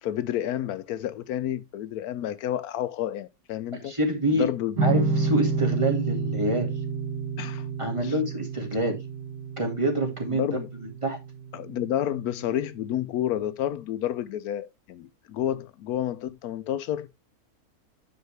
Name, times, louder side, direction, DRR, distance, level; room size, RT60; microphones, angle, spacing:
voice 1, 0.0-3.9 4.3-4.8 7.4-7.7 8.0-8.1 10.3-10.7 11.5-17.2, left 11 dB, 80° left, 1.1 m, -30 dB
voice 2, 3.8-4.4 4.8-6.7 7.8-9.0 9.6-10.4 10.8-11.2, right 1 dB, 20° right, 1.9 m, -26 dB
sound 1, 4.8-12.0, right 4 dB, 85° right, 1.5 m, -29 dB
9.5 x 5.7 x 3.2 m
omnidirectional pair, 1.6 m